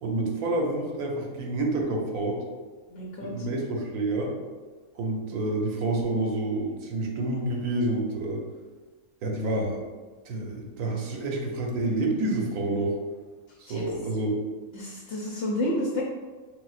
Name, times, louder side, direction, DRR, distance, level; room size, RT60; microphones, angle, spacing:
voice 1, 0.0-2.4 3.2-4.3 4.9-8.4 9.2-9.8 10.2-12.9 13.6-14.3, right 2 dB, 85° right, 0 dB, 1.2 m, -28 dB
voice 2, 2.9-3.4 13.7-13.8 14.7-16.0, left 1 dB, 60° left, -2 dB, 0.8 m, -30 dB
4.7 x 3.6 x 2.4 m, 1.4 s
omnidirectional pair, 1.5 m